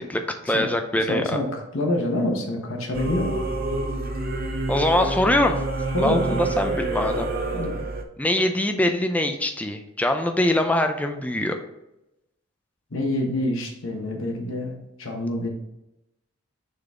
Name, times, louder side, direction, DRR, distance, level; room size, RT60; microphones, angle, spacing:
voice 1, 0.0-1.4 4.7-5.6 6.0-7.3 8.2-11.6, left 1 dB, 5° left, 5 dB, 0.4 m, -23 dB
voice 2, 0.9-3.4 5.9-6.4 7.5-7.7 12.9-15.5, left 1 dB, 75° left, 1 dB, 1.1 m, -27 dB
Singing / Musical instrument, 2.9-8.0, right 2 dB, 45° right, 0.6 m, -27 dB
6.6 x 4.0 x 3.6 m, 0.88 s
head